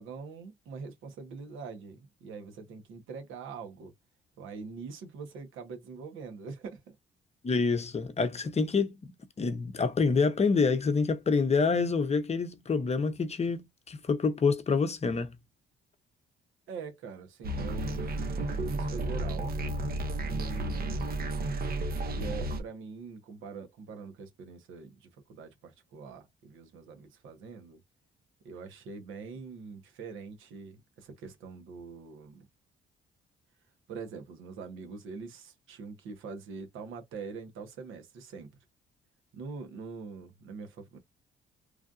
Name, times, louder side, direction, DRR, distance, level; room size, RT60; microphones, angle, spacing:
voice 1, 0.0-3.9 4.4-6.9 16.7-19.6 20.2-21.3 22.1-27.8 28.4-32.5 33.9-38.5 39.3-41.0, right 5 dB, 85° right, 1.2 m, -44 dB
voice 2, 7.4-15.4, left 4 dB, 30° left, 0.7 m, -27 dB
sound 1, 17.4-22.6, right 1 dB, 50° right, 0.9 m, -32 dB
3.2 x 2.6 x 2.4 m
cardioid pair, 90°, 20 cm